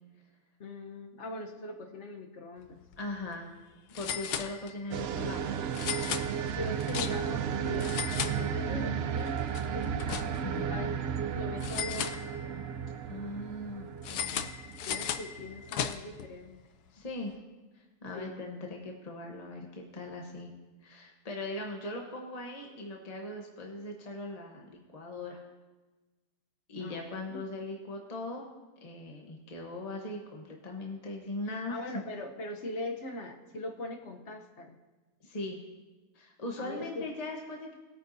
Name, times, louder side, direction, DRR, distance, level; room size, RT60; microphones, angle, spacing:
voice 1, 0.6-2.8 6.4-7.9 8.2-10.1 10.7-10.9 11.3-12.3 14.8-16.5 18.1-18.4 26.8-27.0 27.3-27.5 31.7-34.8 36.6-37.1, left 2 dB, 50° left, 3 dB, 1.1 m, -41 dB
sound 1, 2.8-3.0 3.2-3.3 3.9-5.0 5.7-7.4 7.7-8.9 9.3-10.6 11.6-12.7 14.0-16.3, left 9 dB, 90° left, 1.2 m, -36 dB
voice 2, 3.0-3.5 3.9-5.4 10.4-10.8 13.1-14.4 16.9-17.4 17.7-20.5 20.8-25.4 26.7-28.5 28.8-32.0 35.2-35.6 36.1-37.7, left 2 dB, 30° left, 0 dB, 1.0 m, -40 dB
sound 2, 4.9-15.7, right 7 dB, 80° right, 0.5 m, -34 dB
20.0 x 9.0 x 2.7 m, 1.2 s
omnidirectional pair, 1.6 m